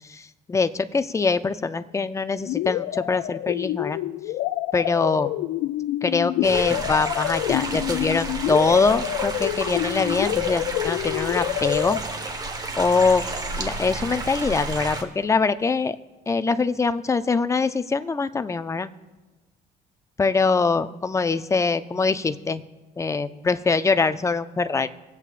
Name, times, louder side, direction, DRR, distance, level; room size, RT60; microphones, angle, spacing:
voice 1, 0.1-4.0 4.7-5.3 6.0-12.0 12.8-13.2 13.6-16.0 16.3-18.9 20.2-22.6 23.0-24.9, left 4 dB, 20° left, 12 dB, 0.5 m, -23 dB
sound 1, 2.5-12.0, left 15 dB, 80° left, 0.4 m, -27 dB
sound 2, 6.4-15.0, right 2 dB, 25° right, 1.3 m, -31 dB
24.5 x 8.3 x 2.5 m, 1.1 s
cardioid pair, 110°, 17 cm